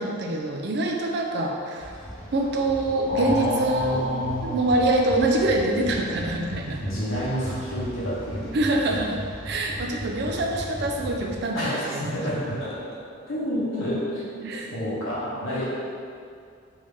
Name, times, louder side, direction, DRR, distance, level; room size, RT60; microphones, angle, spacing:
voice 1, 0.0-1.9 2.3-6.8 8.5-9.2 9.4-12.2 14.4-14.7, right 1 dB, 55° right, 1 dB, 0.4 m, -25 dB
sound 1, 1.8-11.4, equal, 5° left, 0.7 m, -37 dB
voice 2, 3.1-4.6 6.8-8.5 11.5-12.8 13.3-14.2 14.7-15.6, equal, 85° left, -7 dB, 1.0 m, -28 dB
3.5 x 2.7 x 3.3 m, 2.3 s
head